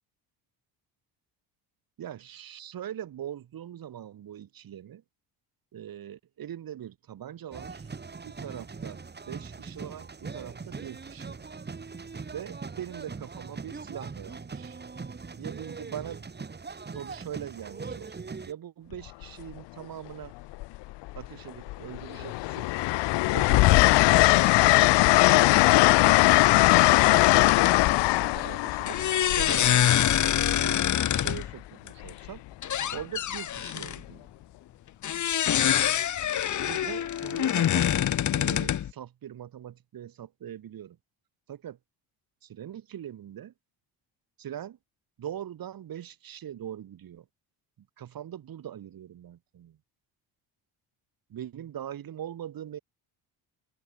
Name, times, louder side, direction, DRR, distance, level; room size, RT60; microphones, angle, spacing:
voice 1, 2.0-5.0 5.7-7.9 8.2-11.5 12.3-14.8 15.4-16.3 16.9-20.3 21.1-22.7 23.3-24.8 25.5-29.0 29.3-30.8 31.1-32.4 32.9-34.3 36.6-37.9 38.3-41.0 41.5-41.8 42.4-43.5 44.4-44.8 45.2-47.3 47.8-49.8 51.3-52.8, right 10 dB, 55° right, 5.7 m, -42 dB
sound 1, 7.5-18.5, right 4 dB, 25° right, 6.0 m, -41 dB
Train, 18.9-19.2 20.5-21.3 21.7-30.4 32.0-32.3, left 20 dB, 75° left, 0.8 m, -20 dB
sound 2, 27.1-27.8 28.9-31.5 31.9-32.1 32.5-34.0 35.0-38.9, left 10 dB, 45° left, 1.3 m, -26 dB
open air
cardioid pair, 120°, 43 cm